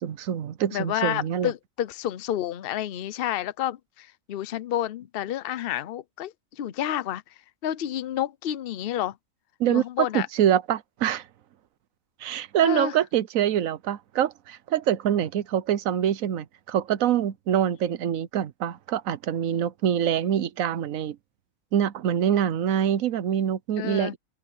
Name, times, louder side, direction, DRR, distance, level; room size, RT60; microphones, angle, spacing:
voice 1, 0.0-1.5 9.6-9.8 10.1-11.2 12.2-21.2 21.7-24.2, right 10 dB, 90° right, 1.2 m, -25 dB
voice 2, 0.7-7.2 7.6-9.2 9.7-10.3 12.6-12.9 23.8-24.1, left 12 dB, 55° left, 0.8 m, -30 dB
open air
omnidirectional pair, 1.4 m